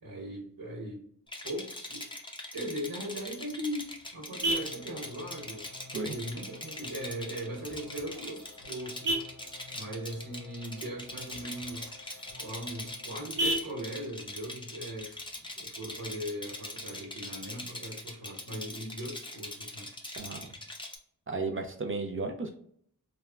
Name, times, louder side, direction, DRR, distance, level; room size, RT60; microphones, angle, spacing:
voice 1, 0.0-1.0 1.4-2.1 2.5-9.2 9.7-19.9, right 1 dB, 80° right, -6 dB, 1.2 m, -39 dB
Rattle, 1.3-21.0, left 1 dB, 15° left, 0.5 m, -42 dB
Vehicle horn car horn honking, 3.1-16.1, right 1 dB, 60° right, 0.9 m, -39 dB
sound 1, 4.4-13.2, left 4 dB, 70° left, 0.6 m, -52 dB
voice 2, 20.2-20.5 21.3-22.6, right 3 dB, 35° right, 3 dB, 0.5 m, -34 dB
3.4 x 2.1 x 2.3 m, 0.63 s
wide cardioid pair, 85°, 36 cm